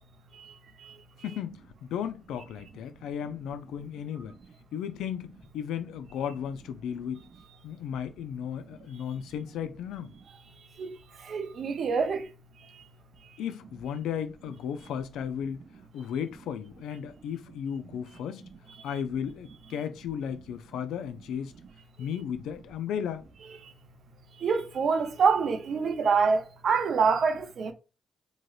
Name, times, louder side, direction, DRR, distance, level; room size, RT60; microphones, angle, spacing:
voice 1, 1.2-4.4 4.7-7.2 7.6-10.1 13.4-15.6 15.9-18.5 18.8-21.5 22.0-23.2, left 8 dB, 85° left, 0.3 m, -35 dB
voice 2, 11.3-12.3 24.4-27.7, right 5 dB, 65° right, 0.5 m, -26 dB
3.1 x 2.6 x 2.3 m
supercardioid pair, 55°, 0 cm